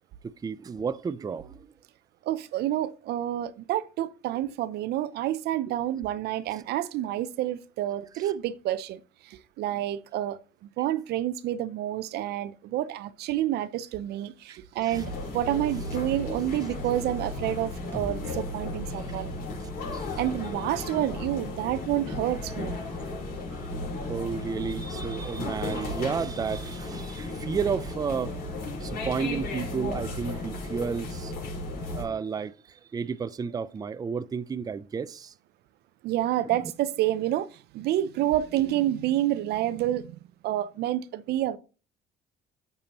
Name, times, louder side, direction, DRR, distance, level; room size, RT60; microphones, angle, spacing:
voice 1, 0.2-1.7 6.5-6.6 8.2-8.3 14.5-15.0 19.9-20.1 23.5-23.7 24.1-28.3 28.7-31.3 31.9-35.3 36.5-36.6, right 6 dB, 20° right, 0.4 m, -32 dB
voice 2, 2.2-19.4 20.2-22.8 36.0-40.2 40.4-41.6, right 13 dB, 75° right, 0.6 m, -29 dB
sound 1, 14.9-32.0, left 2 dB, 65° left, 4.7 m, -35 dB
sound 2, 17.9-21.8, equal, 15° left, 1.6 m, -47 dB
11.0 x 6.9 x 3.0 m
cardioid pair, 110°, 17 cm